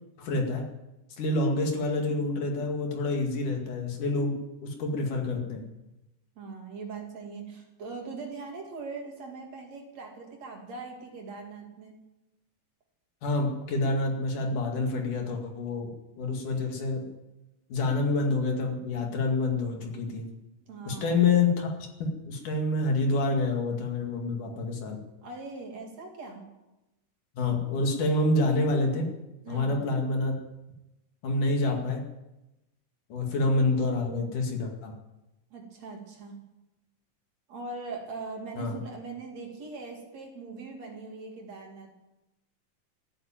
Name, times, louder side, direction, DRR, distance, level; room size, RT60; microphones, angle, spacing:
voice 1, 0.2-0.7 1.2-5.7 13.2-17.1 17.7-20.3 20.9-21.7 22.0-25.0 27.4-29.1 29.5-30.4 31.2-32.1 33.1-35.0 38.6-38.8, left 2 dB, 70° left, 2 dB, 3.7 m, -27 dB
voice 2, 6.4-12.0 20.6-21.2 25.2-26.5 29.4-29.9 35.5-36.4 37.5-41.9, right 4 dB, 55° right, 1 dB, 3.6 m, -41 dB
15.0 x 9.4 x 9.1 m, 0.96 s
omnidirectional pair, 3.8 m